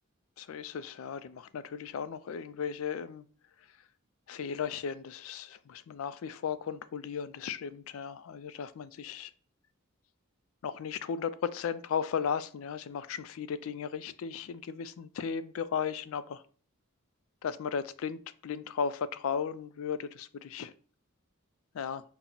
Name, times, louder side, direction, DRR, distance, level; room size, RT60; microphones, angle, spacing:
voice 1, 0.4-3.2 4.3-9.3 10.6-16.4 17.4-18.2 18.4-20.7 21.7-22.0, left 7 dB, 65° left, 0.3 m, -35 dB
5.7 x 2.0 x 3.8 m
head